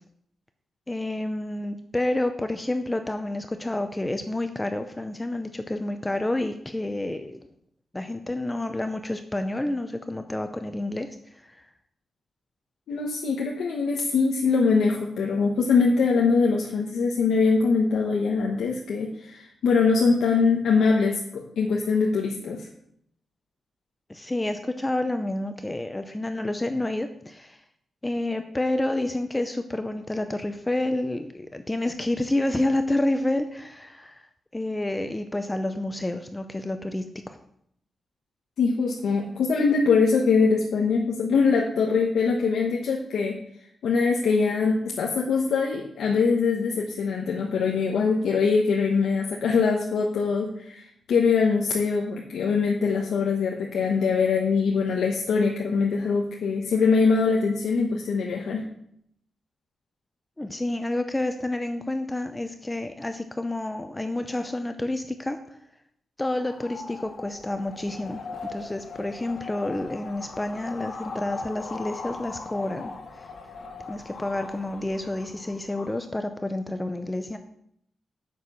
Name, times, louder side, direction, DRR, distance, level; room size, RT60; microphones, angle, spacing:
voice 1, 0.9-7.4 7.9-11.6 24.1-27.6 28.0-37.4 60.4-65.4 66.2-73.3 73.9-77.4, left 1 dB, 15° left, 8 dB, 0.6 m, -29 dB
voice 2, 12.9-22.7 38.6-43.4 43.8-58.7, left 5 dB, 85° left, -1 dB, 1.1 m, -23 dB
sound 1, 66.2-76.0, left 4 dB, 60° left, 1.6 m, -40 dB
7.5 x 6.2 x 5.6 m, 0.71 s
cardioid pair, 105°, 0 cm